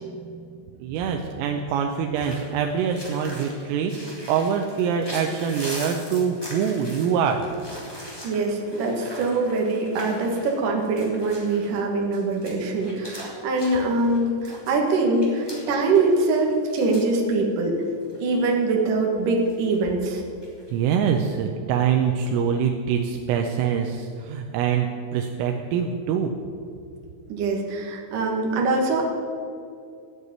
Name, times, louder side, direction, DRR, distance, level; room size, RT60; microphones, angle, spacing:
voice 1, 0.0-3.9 4.3-7.4 20.7-26.3, right 7 dB, 85° right, 3 dB, 3.4 m, -24 dB
sound 1, 2.1-17.2 17.4-17.5 18.0-18.5 19.4-19.8 20.3-20.7, equal, 10° left, 1.6 m, -41 dB
voice 2, 8.2-17.8 18.2-20.2 27.3-29.0, right 3 dB, 55° right, 0 dB, 2.9 m, -23 dB
14.0 x 8.3 x 9.5 m, 2.4 s
omnidirectional pair, 5.9 m